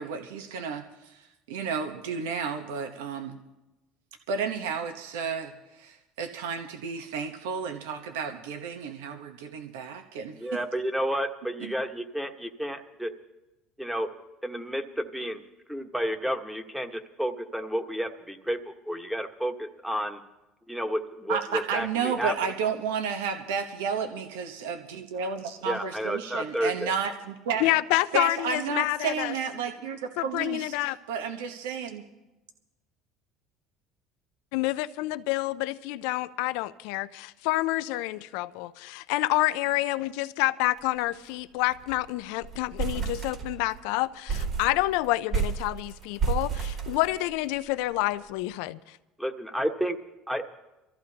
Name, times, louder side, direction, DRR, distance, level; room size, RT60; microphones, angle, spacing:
voice 1, 0.0-3.4 4.3-10.6 11.6-11.7 21.3-27.6 28.1-30.7 31.1-32.0, right 6 dB, 90° right, 6 dB, 1.0 m, -32 dB
voice 2, 10.4-13.1 13.8-14.1 14.4-15.4 15.7-20.2 20.7-22.3 25.6-26.9 49.2-50.0 50.3-50.4, equal, 5° right, 6 dB, 1.3 m, -31 dB
voice 3, 27.6-29.3 30.2-31.0 34.5-49.0, left 18 dB, 75° left, 15 dB, 0.4 m, -28 dB
sound 1, 40.8-41.0 41.3-41.4 41.7-42.1 42.4-43.8 44.3-47.6, right 6 dB, 50° right, 2.5 m, -31 dB
25.5 x 14.0 x 2.8 m, 1.0 s
supercardioid pair, 100°, 0 cm